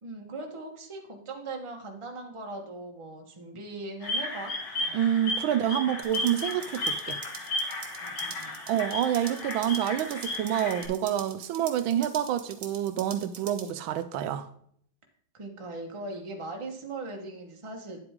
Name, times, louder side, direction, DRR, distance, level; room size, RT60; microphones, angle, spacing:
voice 1, 0.0-5.0 5.4-5.5 8.0-8.6 15.3-18.0, right 2 dB, 20° right, 1.0 m, -40 dB
sound 1, 4.0-10.9, left 2 dB, 60° left, 2.4 m, -34 dB
voice 2, 4.9-7.2 8.7-14.5, right 10 dB, 80° right, 1.4 m, -28 dB
sound 2, 6.0-13.7, right 7 dB, 65° right, 1.7 m, -45 dB
9.6 x 7.8 x 3.6 m
omnidirectional pair, 2.2 m